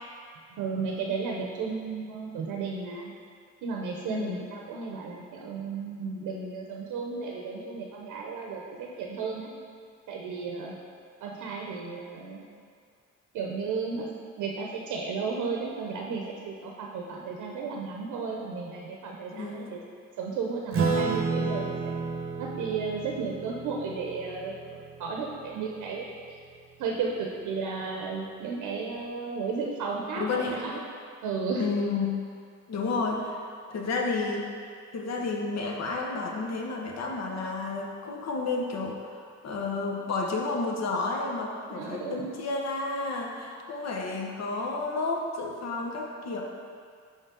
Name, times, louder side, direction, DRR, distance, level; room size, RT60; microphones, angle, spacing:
voice 1, 0.5-3.1 3.6-9.5 10.1-10.8 11.2-12.4 13.3-14.1 14.4-19.8 20.2-21.9 22.4-24.5 25.0-26.4 26.8-30.8 31.2-31.7 41.7-42.3, right 4 dB, 85° right, -1 dB, 0.8 m, -34 dB
voice 2, 4.1-4.4 19.3-19.7 30.2-30.8 31.6-32.2 32.7-33.4 33.7-34.5 34.9-46.4, left 3 dB, 60° left, 0 dB, 1.0 m, -31 dB
Acoustic guitar / Strum, 20.7-25.6, right 4 dB, 45° right, 0.8 m, -31 dB
5.6 x 5.5 x 3.7 m, 2.2 s
cardioid pair, 90°, 30 cm